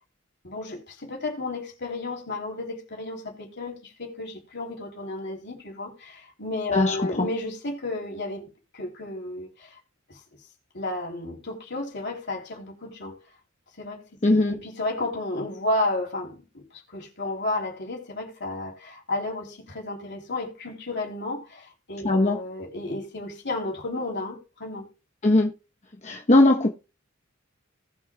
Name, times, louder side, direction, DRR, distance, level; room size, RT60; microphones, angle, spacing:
voice 1, 0.4-9.8 10.1-10.2 10.7-13.2 13.8-14.1 14.5-24.9, left 2 dB, 60° left, 3.2 m, -32 dB
voice 2, 6.7-7.3 14.2-14.6 22.0-22.4 25.2-25.5 26.0-26.7, left 2 dB, 35° left, 0.9 m, -19 dB
18.5 x 6.2 x 2.3 m
head